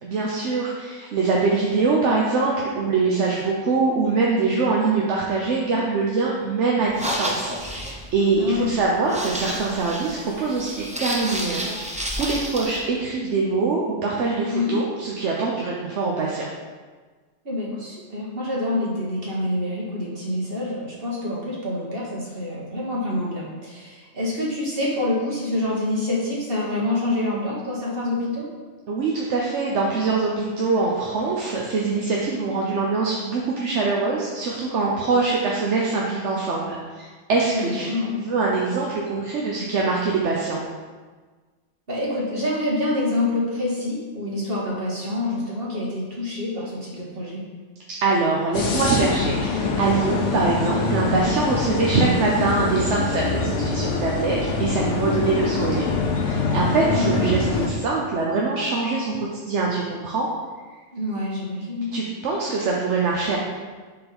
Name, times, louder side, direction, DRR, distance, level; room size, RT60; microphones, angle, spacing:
voice 1, 0.0-11.7 12.2-16.4 28.9-40.6 48.0-55.9 56.2-60.3 61.9-63.4, right 4 dB, 70° right, -3 dB, 1.1 m, -23 dB
sound 1, 6.8-12.8, equal, 10° right, 0.6 m, -31 dB
voice 2, 8.3-8.7 14.5-14.8 17.4-28.5 37.5-38.2 41.9-47.4 56.8-57.2 60.9-61.9, left 2 dB, 50° right, -5 dB, 1.8 m, -26 dB
sound 2, 48.5-57.7, left 4 dB, 80° left, 1.2 m, -24 dB
6.8 x 3.9 x 5.4 m, 1.4 s
omnidirectional pair, 1.3 m